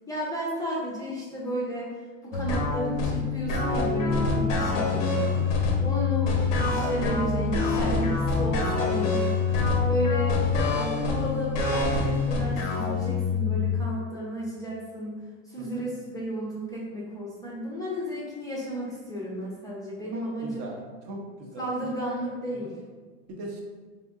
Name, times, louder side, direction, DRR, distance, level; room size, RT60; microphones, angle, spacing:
voice 1, 0.1-1.9 2.2-5.3 5.8-9.3 9.9-10.5 10.7-20.6 21.6-22.7, equal, 10° left, -6 dB, 0.5 m, -33 dB
sound 1, 2.3-13.8, left 4 dB, 75° left, 0.7 m, -25 dB
voice 2, 4.8-5.5 9.4-9.6 15.6-15.8 20.1-20.8 21.1-21.7 22.2-22.3 22.6-22.7 23.3-23.6, right 2 dB, 40° right, 0 dB, 0.6 m, -39 dB
3.6 x 2.7 x 2.4 m, 1.4 s
hypercardioid pair, 115°, 38 cm